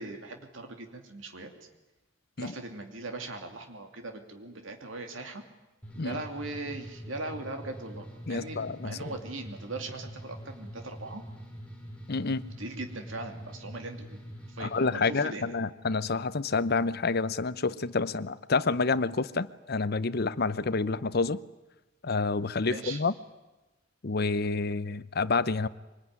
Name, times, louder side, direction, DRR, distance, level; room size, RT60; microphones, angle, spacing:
voice 1, 0.0-1.5 2.4-5.4 6.0-11.2 12.6-14.2 14.5-15.5 22.7-23.0, right 2 dB, 85° right, 5 dB, 2.7 m, -40 dB
sound 1, 5.8-14.9, equal, 5° left, 5.1 m, -44 dB
voice 2, 8.3-9.1 12.1-12.5 14.6-21.4 22.0-23.1 24.0-25.7, left 4 dB, 55° left, 16 dB, 0.7 m, -28 dB
24.0 x 20.0 x 9.5 m, 1.1 s
head